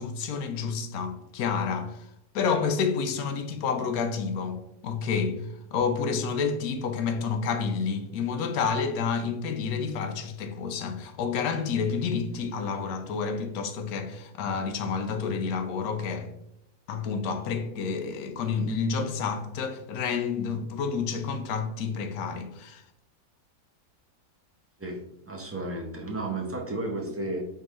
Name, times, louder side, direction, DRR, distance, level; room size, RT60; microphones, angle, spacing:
voice 1, 0.0-2.1 2.3-5.4 5.7-16.3 16.9-22.8, left 5 dB, 90° left, 1.1 m, -29 dB
voice 2, 24.8-27.4, right 2 dB, 15° right, 0.4 m, -33 dB
4.4 x 3.8 x 3.1 m
omnidirectional pair, 1.5 m